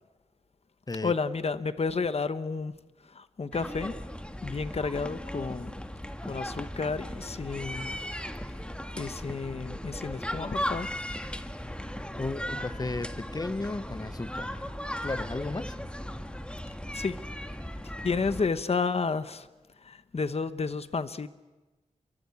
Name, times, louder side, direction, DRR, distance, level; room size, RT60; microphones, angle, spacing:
voice 1, 1.0-2.7 3.1-3.9 4.4-5.7 6.2-8.0 8.9-10.9 16.9-17.2 18.0-19.5 19.8-21.3, left 4 dB, 55° left, 1.1 m, -31 dB
sound 1, 3.5-18.5, equal, 10° left, 1.7 m, -37 dB
voice 2, 12.2-14.6 15.0-15.8, left 2 dB, 30° left, 0.9 m, -34 dB
29.5 x 24.0 x 8.5 m
wide cardioid pair, 110°, 13 cm